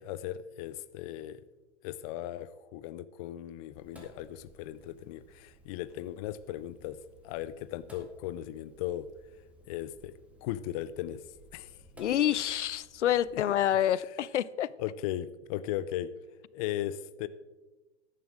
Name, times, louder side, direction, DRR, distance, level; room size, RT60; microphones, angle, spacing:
voice 1, 0.0-1.4 1.8-7.0 7.2-9.1 9.7-10.1 10.4-11.2 11.5-11.8 12.1-12.2 13.3-13.4 14.8-16.1 16.5-17.3, left 13 dB, 35° left, 15 dB, 0.4 m, -37 dB
Sink (filling or washing), 3.8-13.7, right 1 dB, 5° right, 2.1 m, -57 dB
voice 2, 12.0-14.7, left 11 dB, 90° left, 20 dB, 0.5 m, -27 dB
14.0 x 11.0 x 3.6 m, 1.2 s
hypercardioid pair, 130°, 35 cm